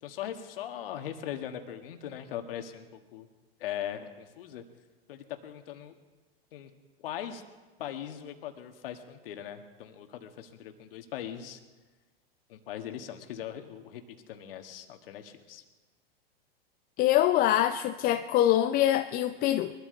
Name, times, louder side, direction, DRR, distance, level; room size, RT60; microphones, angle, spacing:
voice 1, 0.0-3.3 3.6-4.6 5.1-5.9 6.5-6.7 7.0-7.4 7.8-11.6 12.5-14.0 14.3-15.6, left 10 dB, 70° left, 1.7 m, -40 dB
voice 2, 17.0-19.7, left 12 dB, 30° left, 0.5 m, -24 dB
22.0 x 13.0 x 3.9 m
hypercardioid pair, 115°, 30 cm